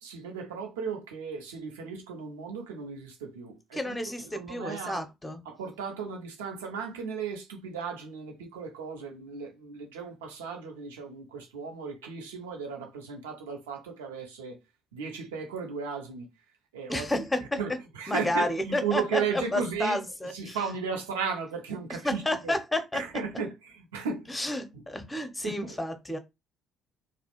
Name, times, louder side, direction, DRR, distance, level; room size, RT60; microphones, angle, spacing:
voice 1, 0.0-4.0 4.2-5.1 5.4-14.6 14.9-16.3 16.7-17.1 17.6-20.0 20.3-22.6 22.9-24.3 24.7-24.8 25.4-25.8, right 6 dB, 80° right, 0.5 m, -35 dB
voice 2, 3.7-5.4 16.9-17.6 18.1-20.6 22.0-23.0 24.3-26.2, left 1 dB, 15° left, 0.6 m, -31 dB
2.4 x 2.0 x 2.9 m
figure-of-eight pair, 50°, 0 cm